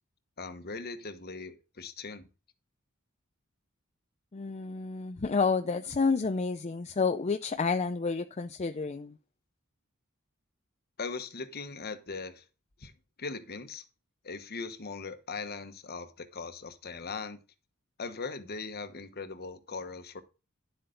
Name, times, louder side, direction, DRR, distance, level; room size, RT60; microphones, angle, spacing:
voice 1, 0.4-2.3 11.0-12.4 12.8-12.9 13.2-13.9 14.2-17.4 18.0-20.2, left 4 dB, 45° left, 1.1 m, -39 dB
voice 2, 4.3-9.2, left 4 dB, 30° left, 0.5 m, -30 dB
11.0 x 7.9 x 3.9 m
head